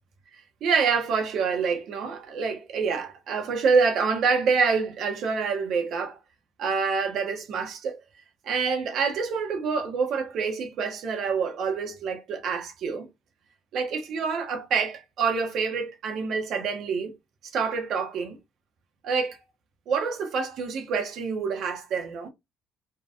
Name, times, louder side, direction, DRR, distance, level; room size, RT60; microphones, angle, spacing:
voice 1, 0.6-6.2 6.6-8.0 8.4-13.1 13.7-17.1 17.5-18.4 19.0-19.4 19.9-22.3, right 5 dB, 65° right, 1.3 m, -27 dB
4.5 x 3.5 x 2.5 m
cardioid pair, 115°, 0 cm